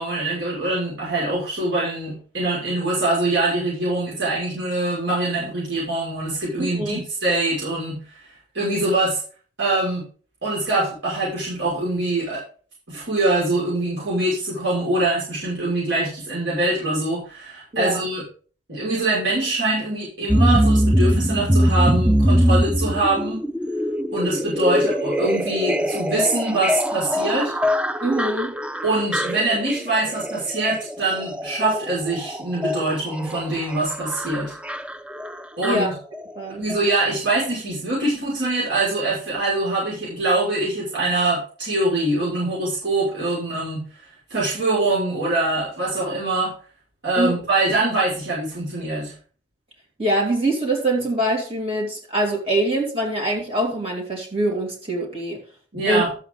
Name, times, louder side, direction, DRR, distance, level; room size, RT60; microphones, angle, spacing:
voice 1, 0.0-9.2 9.6-10.0 10.4-12.4 12.9-18.2 18.7-23.4 24.1-27.5 28.8-34.5 35.6-35.9 36.6-43.8 44.3-46.5 47.0-49.1 55.7-56.1, right 2 dB, 75° right, -7 dB, 6.1 m, -23 dB
voice 2, 6.6-7.0 17.7-18.0 28.0-28.5 35.6-35.9 36.3-36.6 47.1-47.3 50.0-55.4 55.9-56.0, right 1 dB, 30° right, -2 dB, 3.2 m, -23 dB
sound 1, 20.3-36.4 36.7-36.8, equal, 5° right, 0.4 m, -23 dB
12.5 x 8.1 x 4.0 m, 0.40 s
head